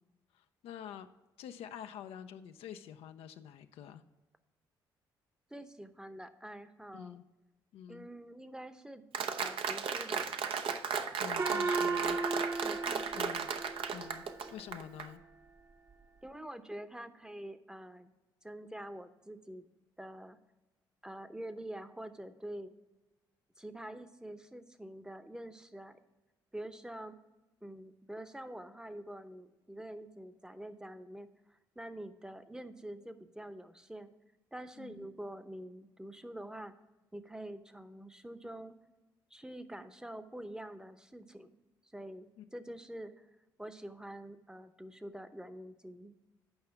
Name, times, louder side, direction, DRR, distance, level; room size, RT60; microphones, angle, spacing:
voice 1, 0.3-1.1 1.4-4.0 6.9-7.2 7.7-8.1 11.2-12.2 13.2-13.5 13.9-14.2 14.5-15.2 34.8-35.1 42.4-42.5, left 9 dB, 70° left, 8 dB, 0.5 m, -47 dB
voice 2, 5.5-7.2 7.9-9.0 9.4-10.3 12.6-13.4 16.2-18.1 18.4-19.6 20.0-20.4 21.0-22.7 23.6-26.0 26.5-27.2 27.6-34.1 34.5-36.7 37.1-38.7 39.3-41.5 41.9-43.3 43.6-46.1, right 1 dB, 5° right, 10 dB, 0.8 m, -46 dB
Applause, 9.1-15.1, right 6 dB, 60° right, 0.7 m, -35 dB
Gong, 11.4-14.3, right 3 dB, 30° right, 0.9 m, -35 dB
8.7 x 5.5 x 5.7 m, 1.1 s
hypercardioid pair, 50°, 10 cm